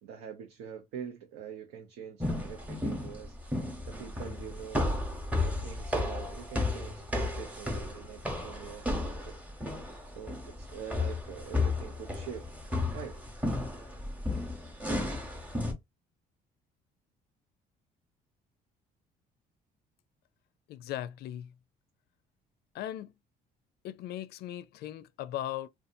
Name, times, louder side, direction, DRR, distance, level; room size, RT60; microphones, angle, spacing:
voice 1, 0.0-3.4 3.8-4.9 5.4-8.9 9.3-9.4 10.1-12.5 12.9-13.2, right 8 dB, 85° right, 0.7 m, -44 dB
sound 1, 2.2-15.7, left 2 dB, 10° right, 0.9 m, -33 dB
voice 2, 20.7-21.5 22.7-23.1 23.8-25.7, left 12 dB, 70° left, 0.4 m, -38 dB
2.6 x 2.3 x 2.5 m
cardioid pair, 110°, 17 cm